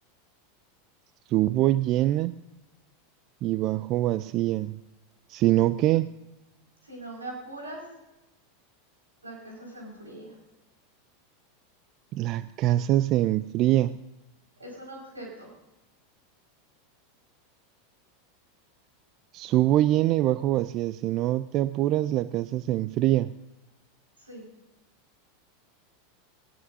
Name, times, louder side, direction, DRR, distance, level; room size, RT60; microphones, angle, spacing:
voice 1, 1.3-2.3 3.4-4.8 5.3-6.1 12.1-14.0 19.3-23.3, right 14 dB, 45° right, 17 dB, 0.4 m, -24 dB
voice 2, 6.8-7.9 9.2-10.3 14.6-15.5 24.2-24.5, right 1 dB, 85° right, -2 dB, 5.4 m, -41 dB
19.0 x 18.5 x 2.7 m, 0.98 s
figure-of-eight pair, 85°, 0 cm